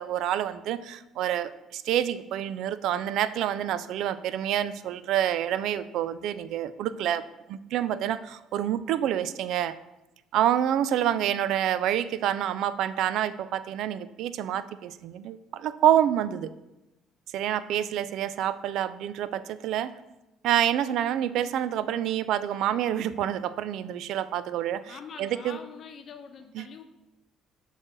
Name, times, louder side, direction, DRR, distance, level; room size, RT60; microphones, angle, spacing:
voice 1, 0.0-7.2 7.5-9.7 10.3-16.5 17.3-19.9 20.4-24.9 25.2-25.6 26.6-26.7, right 11 dB, 70° right, 14 dB, 0.3 m, -27 dB
voice 2, 24.8-26.8, left 6 dB, 50° left, 6 dB, 0.8 m, -44 dB
6.6 x 3.2 x 6.0 m, 0.97 s
cardioid pair, 110°, 0 cm